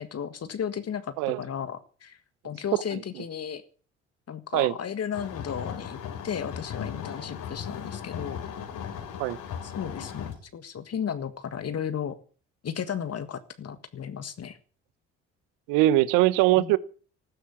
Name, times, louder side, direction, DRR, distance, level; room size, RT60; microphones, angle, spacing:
voice 1, 0.0-2.2 2.4-3.6 4.3-6.0 6.2-8.4 9.6-12.2 12.6-14.6 16.6-16.7, left 8 dB, 45° left, 1.7 m, -34 dB
sound 1, 5.1-10.3, left 8 dB, 65° left, 4.0 m, -37 dB
voice 2, 15.7-16.8, right 16 dB, 75° right, 1.1 m, -21 dB
14.5 x 13.0 x 7.3 m
hypercardioid pair, 50°, 33 cm